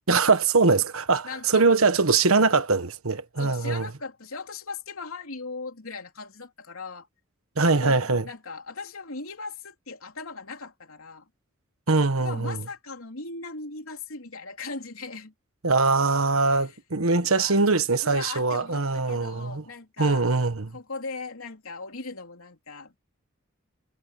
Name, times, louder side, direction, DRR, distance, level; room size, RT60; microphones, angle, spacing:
voice 1, 0.1-3.9 7.6-8.2 11.9-12.6 15.6-19.6 20.0-20.7, right 4 dB, 80° right, 1.3 m, -22 dB
voice 2, 1.2-1.8 2.3-2.5 3.4-7.1 7.8-11.3 12.2-15.3 16.4-16.8 17.2-17.7 18.0-20.3 20.7-23.0, left 4 dB, 85° left, 3.2 m, -38 dB
head